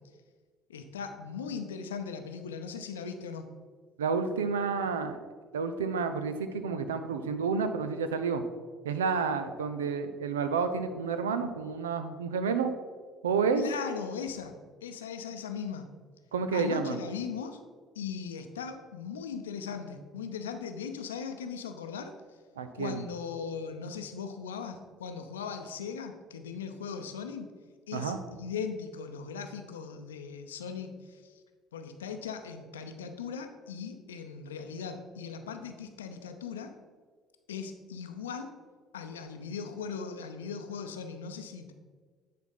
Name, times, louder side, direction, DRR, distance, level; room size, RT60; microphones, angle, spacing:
voice 1, 0.7-3.5 13.6-14.5 14.8-15.9 16.5-17.6 17.9-22.1 22.7-27.5 27.9-31.3 31.7-36.8 37.5-38.6 38.9-41.7, left 6 dB, 80° left, 7 dB, 0.6 m, -39 dB
voice 2, 4.0-5.2 5.5-8.4 8.8-12.7 13.2-13.6 16.3-17.0 22.6-23.0 27.9-28.2, right 5 dB, 80° right, 9 dB, 0.5 m, -30 dB
9.3 x 4.3 x 5.4 m, 1.5 s
figure-of-eight pair, 55°, 0 cm